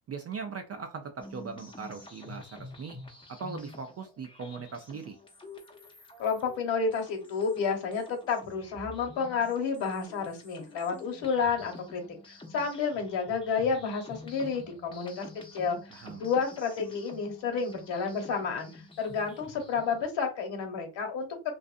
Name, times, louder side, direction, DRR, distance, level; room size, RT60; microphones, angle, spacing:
voice 1, 0.1-3.0 3.3-5.2 15.9-16.2, right 5 dB, 35° right, 5 dB, 0.4 m, -40 dB
sound 1, 1.2-20.1, left 2 dB, 10° left, 0.6 m, -49 dB
voice 2, 6.2-15.3 15.5-15.8 16.2-18.7 19.0-21.3, left 5 dB, 60° left, 3 dB, 1.2 m, -30 dB
2.5 x 2.4 x 2.5 m, 0.30 s
cardioid pair, 90°, 50 cm